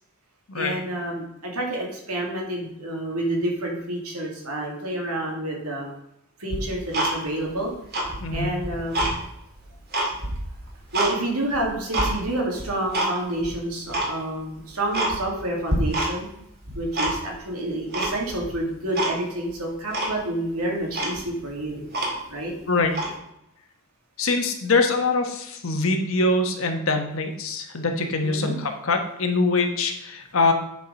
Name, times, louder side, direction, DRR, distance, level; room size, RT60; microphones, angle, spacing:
voice 1, 0.5-5.9 6.4-7.7 8.3-9.1 10.9-16.3 16.7-21.8 22.3-22.5 28.2-28.6, right 1 dB, 85° right, -1 dB, 2.5 m, -29 dB
Tick-tock, 6.5-7.5 7.8-9.2 9.6-11.1 11.5-12.1 12.6-13.1 13.4-13.5 13.9-14.1 14.5-14.6 14.9-15.4 15.7-16.3 16.6-17.4 17.9-18.5 18.9-19.1 19.5-19.6 19.9-20.2 20.6-20.7 20.9-22.4 22.9-23.1, right 1 dB, 45° right, 2.2 m, -26 dB
voice 2, 8.2-8.5 22.7-22.9 24.2-30.5, left 3 dB, 65° left, 4 dB, 1.2 m, -23 dB
9.5 x 4.8 x 5.3 m, 0.80 s
head